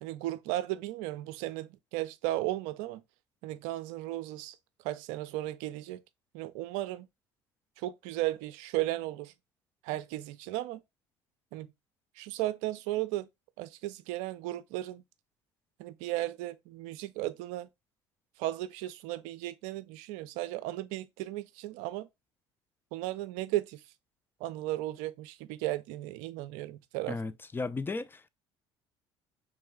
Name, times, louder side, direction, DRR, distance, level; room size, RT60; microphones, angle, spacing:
voice 1, 0.0-3.0 3.4-4.6 4.8-6.0 6.3-7.1 7.8-9.3 9.8-10.8 11.5-11.7 12.2-13.3 13.6-15.0 15.8-17.7 18.4-22.1 22.9-23.8 24.4-27.2, right 16 dB, 70° right, 0.4 m, -35 dB
voice 2, 27.1-28.3, left 3 dB, 15° left, 0.4 m, -35 dB
3.1 x 3.0 x 3.6 m
hypercardioid pair, 65°, 13 cm